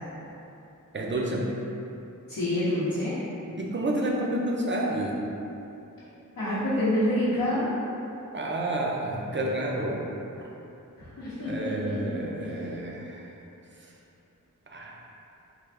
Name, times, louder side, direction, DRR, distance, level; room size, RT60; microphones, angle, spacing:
voice 1, 0.9-1.5 3.5-5.2 8.3-10.1 10.4-10.5 11.4-13.3 14.7-14.9, right 1 dB, 35° right, -2 dB, 0.5 m, -30 dB
voice 2, 2.3-3.1 6.4-7.7 11.0-12.5, left 1 dB, 80° left, -12 dB, 0.7 m, -27 dB
3.4 x 2.4 x 3.4 m, 2.9 s
wide cardioid pair, 60°, 33 cm